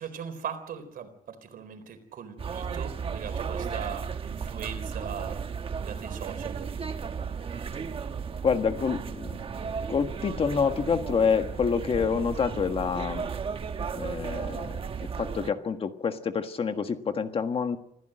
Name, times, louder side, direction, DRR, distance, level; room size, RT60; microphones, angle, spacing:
voice 1, 0.0-5.4 5.8-6.7, right 8 dB, 70° right, 8 dB, 4.1 m, -39 dB
sound 1, 2.4-15.5, right 6 dB, 35° right, 1.2 m, -34 dB
voice 2, 8.4-9.4 9.9-13.3 13.9-14.8 15.2-17.8, left 6 dB, 40° left, 7 dB, 1.5 m, -27 dB
27.0 x 15.5 x 7.8 m, 0.80 s
wide cardioid pair, 165°, 15 cm